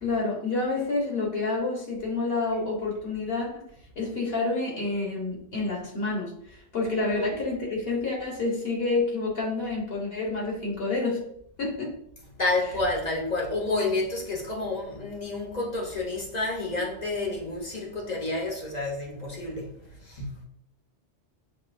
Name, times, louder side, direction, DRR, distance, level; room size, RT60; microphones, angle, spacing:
voice 1, 0.0-3.6 4.0-11.2 11.6-11.9, left 3 dB, 60° left, 1.3 m, -28 dB
voice 2, 7.0-7.4 12.4-20.4, left 2 dB, 40° left, 0.9 m, -30 dB
6.6 x 2.8 x 2.5 m
omnidirectional pair, 1.2 m